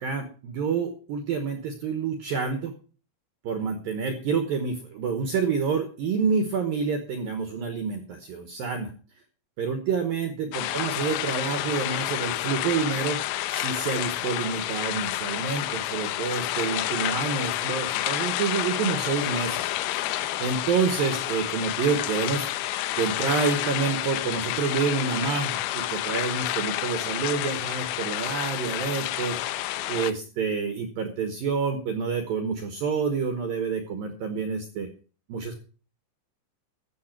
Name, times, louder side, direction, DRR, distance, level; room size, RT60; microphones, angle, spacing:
voice 1, 0.0-2.7 3.4-8.9 9.6-13.2 13.5-22.5 23.0-29.4 29.9-34.9 35.3-35.6, right 5 dB, 80° right, 7 dB, 2.0 m, -28 dB
sound 1, 10.5-30.1, left 15 dB, 80° left, 2.9 m, -29 dB
14.0 x 7.6 x 6.0 m, 0.39 s
omnidirectional pair, 5.9 m